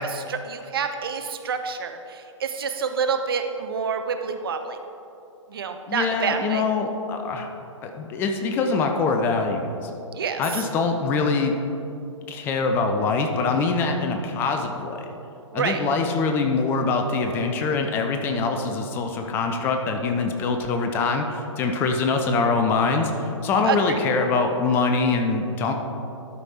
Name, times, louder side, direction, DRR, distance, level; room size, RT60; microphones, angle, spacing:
voice 1, 0.0-4.8 5.5-6.6 10.1-10.4 15.5-15.8 23.6-24.0, right 6 dB, 45° right, 7 dB, 0.7 m, -28 dB
voice 2, 5.9-7.5 7.8-9.9 10.4-11.6 12.3-15.1 15.5-25.7, left 4 dB, 15° left, 4 dB, 0.4 m, -24 dB
12.0 x 5.2 x 4.2 m, 2.8 s
figure-of-eight pair, 125°, 16 cm